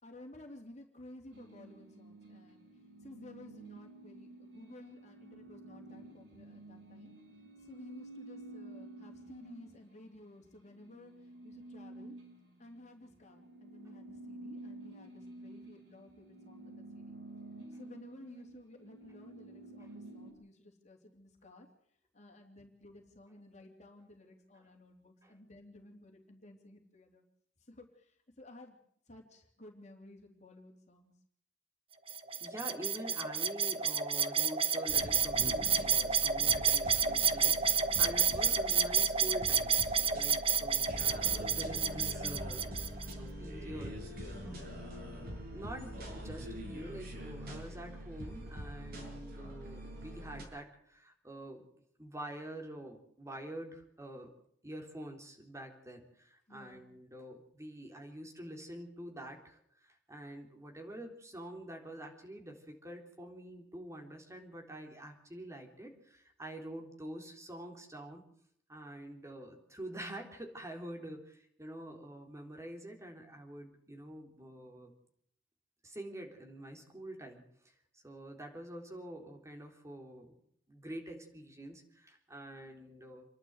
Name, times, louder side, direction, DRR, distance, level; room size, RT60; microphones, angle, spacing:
voice 1, 0.0-2.7 3.0-7.1 7.6-11.1 11.4-12.1 12.6-17.2 17.7-21.7 22.1-27.2 27.7-28.8 29.1-31.1 56.5-56.8, left 1 dB, 40° left, 2 dB, 3.4 m, -54 dB
sound 1, 1.3-10.2 10.5-20.3, right 2 dB, 80° right, 6.3 m, -51 dB
sound 2, 32.1-43.1, right 7 dB, 30° right, 1.1 m, -30 dB
voice 2, 32.4-42.8 43.1-44.8 45.5-51.6 52.0-54.3 54.6-59.6 59.8-68.2 68.7-74.9 75.8-77.4 78.0-80.4 80.7-83.3, right 1 dB, 15° right, 2 dB, 3.7 m, -47 dB
sound 3, 34.9-50.4, equal, 55° right, 6.2 m, -44 dB
28.5 x 12.0 x 8.1 m, 0.68 s
head